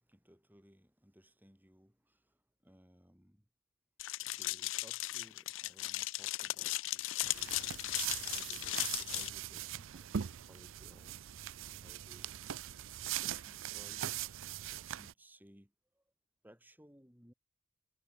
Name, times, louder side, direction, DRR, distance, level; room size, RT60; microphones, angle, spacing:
voice 1, 0.0-3.5 4.2-7.8 8.3-11.3 11.5-12.4 12.9-14.4 14.9-16.0 16.4-17.3, equal, 10° right, 5.4 m, -62 dB
sound 1, 4.0-9.3, left 17 dB, 60° left, 0.4 m, -37 dB
sound 2, 7.2-15.1, right 11 dB, 65° right, 0.5 m, -41 dB
head